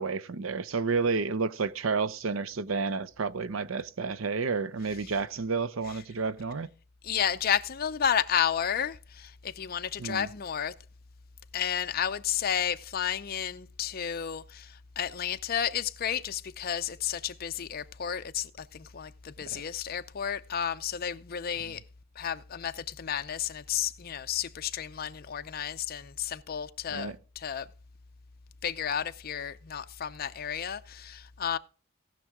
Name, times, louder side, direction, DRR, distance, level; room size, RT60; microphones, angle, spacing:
voice 1, 0.0-6.7 10.0-10.3 19.5-19.6 26.9-27.2, right 4 dB, 80° right, 0.6 m, -30 dB
voice 2, 7.0-10.7 11.5-21.8 22.2-27.7 28.6-31.6, left 8 dB, 45° left, 0.5 m, -32 dB
18.0 x 6.1 x 3.6 m
head